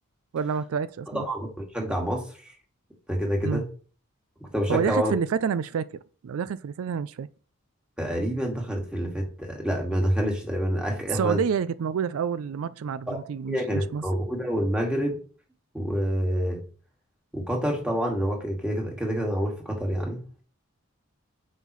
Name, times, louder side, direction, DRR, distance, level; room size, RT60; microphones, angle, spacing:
voice 1, 0.3-1.3 3.4-3.6 4.7-7.3 11.1-14.1, right 7 dB, 80° right, 0.4 m, -28 dB
voice 2, 1.1-1.5 1.7-2.2 3.1-3.6 4.4-5.2 8.0-11.4 13.1-13.2 13.5-15.2 15.7-16.6 17.3-20.2, equal, 5° right, 1.9 m, -27 dB
9.1 x 5.5 x 3.1 m
head